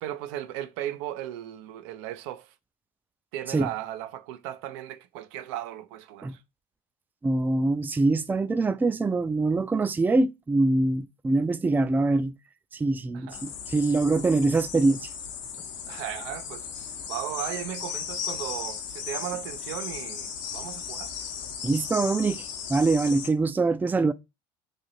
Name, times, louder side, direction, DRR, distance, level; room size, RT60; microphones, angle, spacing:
voice 1, 0.0-2.5 3.3-6.4 13.1-13.5 15.9-16.7 17.1-21.1, right 12 dB, 75° right, 0.5 m, -36 dB
voice 2, 7.2-12.3 12.7-15.1 21.6-24.1, right 3 dB, 10° right, 0.4 m, -24 dB
sound 1, 13.3-23.3, left 7 dB, 75° left, 0.8 m, -36 dB
3.3 x 2.6 x 4.0 m
hypercardioid pair, 80°, 16 cm